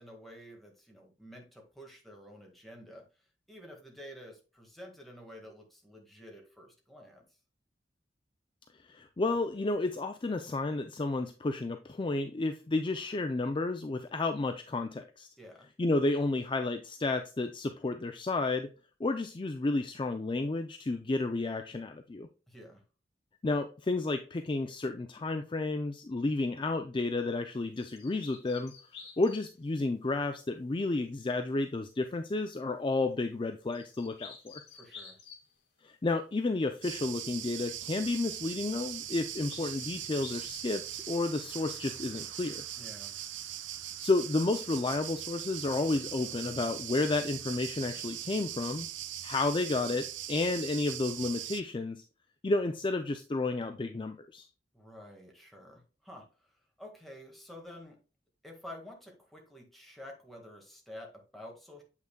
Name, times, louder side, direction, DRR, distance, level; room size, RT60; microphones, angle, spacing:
voice 1, 0.0-3.0 3.5-7.2 15.4-15.7 22.5-22.8 34.7-35.2 42.8-43.1 54.7-58.0 58.4-61.8, left 1 dB, ahead, 0 dB, 1.7 m, -50 dB
voice 2, 8.9-15.3 15.8-18.7 19.0-22.3 23.4-28.7 29.2-34.6 35.8-42.6 44.0-48.9 49.2-52.0 52.4-54.5, left 2 dB, 25° left, 6 dB, 0.4 m, -31 dB
sound 1, 27.7-29.6 33.7-35.6 36.9-37.2 38.6-40.8 42.3-42.8 45.0-45.2, left 6 dB, 80° left, 2.3 m, -51 dB
sound 2, 36.8-51.6, right 11 dB, 90° right, 0.6 m, -40 dB
7.8 x 5.7 x 2.2 m, 0.34 s
head